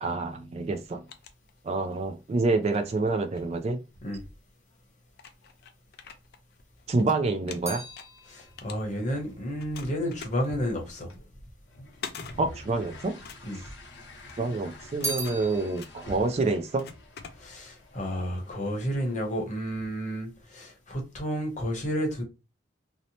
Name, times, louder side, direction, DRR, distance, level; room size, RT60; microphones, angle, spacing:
voice 1, 0.0-1.1 1.6-3.8 6.9-7.8 12.4-13.2 13.6-13.7 14.4-16.9, right 3 dB, 35° right, 0.3 m, -27 dB
sound 1, 0.7-2.0 2.5-4.2 4.8-4.9 5.1-7.0 7.3-9.2 9.6-17.8, left 6 dB, 55° left, 0.4 m, -46 dB
sound 2, 6.7-11.1 11.9-12.7 13.0-14.1 14.4-18.0 18.2-18.8, right 2 dB, 15° right, 1.0 m, -41 dB
voice 2, 8.3-11.2 13.5-13.6 17.4-22.2, equal, 40° left, 0.8 m, -31 dB
sound 3, 8.4-19.4, left 1 dB, 80° left, 0.7 m, -48 dB
2.7 x 2.0 x 2.8 m
head